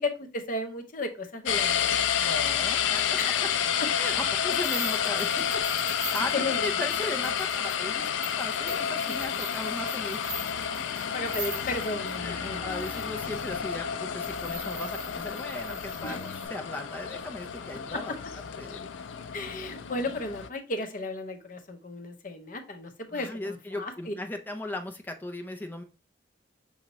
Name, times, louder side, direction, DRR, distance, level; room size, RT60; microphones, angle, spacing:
voice 1, 0.0-2.0 3.2-3.4 3.8-3.9 5.8-6.0 6.3-6.9 10.4-12.7 16.0-16.2 17.9-18.0 19.3-24.1, left 2 dB, 45° left, 6 dB, 0.7 m, -34 dB
sound 1, 1.5-20.5, left 8 dB, 85° left, 0.4 m, -30 dB
voice 2, 2.2-3.2 4.0-10.4 12.2-18.8 23.1-25.8, left 1 dB, 10° left, 4 dB, 0.5 m, -37 dB
sound 2, 4.6-12.1 12.7-13.6 14.2-16.5, right 3 dB, 80° right, 1.8 m, -42 dB
6.3 x 2.8 x 2.9 m, 0.33 s
head